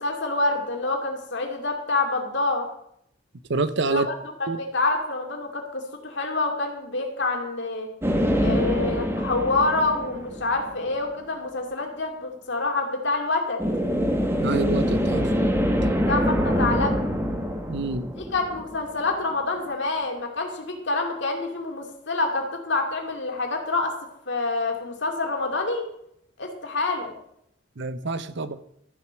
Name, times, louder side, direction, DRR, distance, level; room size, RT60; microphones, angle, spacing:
voice 1, 0.0-2.7 3.9-4.1 4.4-7.9 8.4-13.6 16.1-17.1 18.1-23.9 24.3-25.9 26.4-27.1, left 3 dB, 60° left, 2 dB, 2.4 m, -27 dB
voice 2, 3.5-4.1 4.5-4.6 14.4-15.3 17.7-18.1 27.8-28.6, right 3 dB, 60° right, 13 dB, 0.7 m, -27 dB
sound 1, 8.0-10.8 13.6-19.0, equal, 10° right, 1.3 m, -24 dB
13.0 x 7.8 x 6.1 m, 0.76 s
head